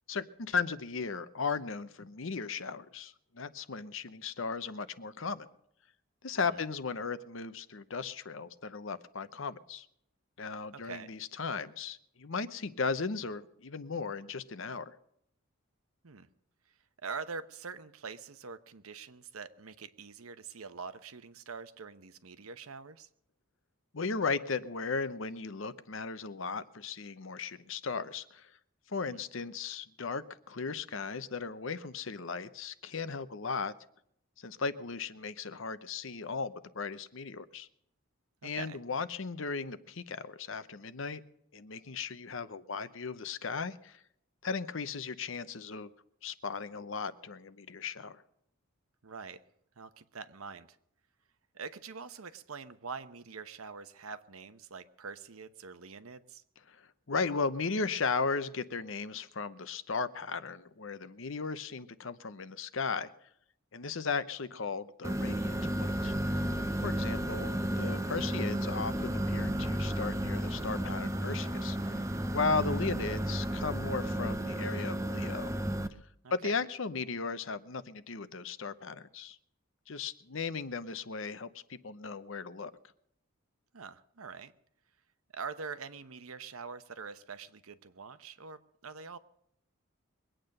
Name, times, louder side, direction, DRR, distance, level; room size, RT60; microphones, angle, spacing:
voice 1, 0.1-5.5 6.2-9.9 10.4-14.9 23.9-28.5 28.9-33.7 34.4-37.7 38.4-41.2 41.5-44.0 44.4-45.9 46.2-48.2 56.7-56.8 57.1-63.1 63.7-66.2 66.8-72.1 72.3-75.5 76.3-79.4 79.9-82.7, left 4 dB, 65° left, 13 dB, 0.8 m, -36 dB
voice 2, 10.7-11.1 16.0-16.3 17.0-23.1 29.0-29.2 38.4-38.8 49.0-49.4 49.8-50.8 51.5-56.4 66.9-67.1 76.2-76.5 83.7-84.5 85.3-89.2, right 5 dB, 85° right, 11 dB, 1.0 m, -44 dB
sound 1, 65.0-75.9, right 1 dB, 15° right, 0.7 m, -33 dB
22.5 x 8.9 x 6.6 m, 0.75 s
head